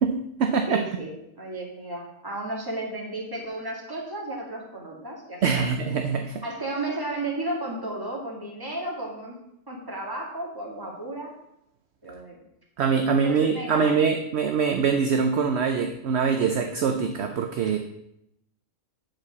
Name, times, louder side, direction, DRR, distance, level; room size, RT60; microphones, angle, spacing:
voice 1, 0.0-0.8 5.4-6.3 12.8-17.8, right 5 dB, 60° right, 5 dB, 0.9 m, -23 dB
voice 2, 0.7-5.8 6.4-9.4 9.7-11.3 12.0-12.4 13.2-14.0 17.6-17.7, right 1 dB, 15° right, -2 dB, 2.0 m, -34 dB
7.7 x 4.7 x 7.1 m, 0.80 s
omnidirectional pair, 1.4 m